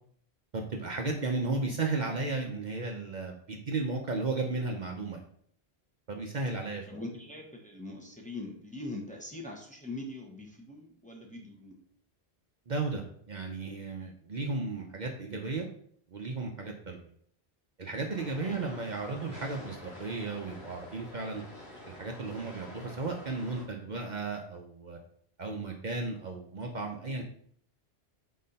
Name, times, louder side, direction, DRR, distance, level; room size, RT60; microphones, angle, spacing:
voice 1, 0.5-5.2 6.1-6.9 12.7-15.7 16.1-17.1 17.8-21.4 21.8-25.0 25.4-27.2, right 3 dB, 50° right, 1 dB, 0.7 m, -34 dB
voice 2, 6.9-11.8 18.4-18.7, left 2 dB, 10° left, -1 dB, 0.9 m, -42 dB
sound 1, 18.1-23.7, left 1 dB, 75° left, 1.8 m, -47 dB
4.2 x 4.2 x 5.2 m, 0.62 s
omnidirectional pair, 1.1 m